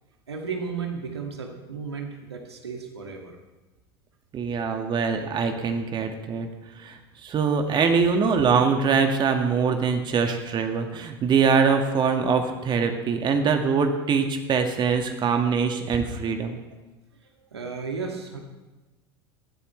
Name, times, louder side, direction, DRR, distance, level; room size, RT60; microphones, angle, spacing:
voice 1, 0.3-3.4 17.4-18.4, right 5 dB, 80° right, 2 dB, 2.3 m, -34 dB
voice 2, 4.3-6.5 6.8-16.6, right 5 dB, 35° right, 5 dB, 1.9 m, -23 dB
20.0 x 15.5 x 3.3 m, 1.1 s
figure-of-eight pair, 75°, 13 cm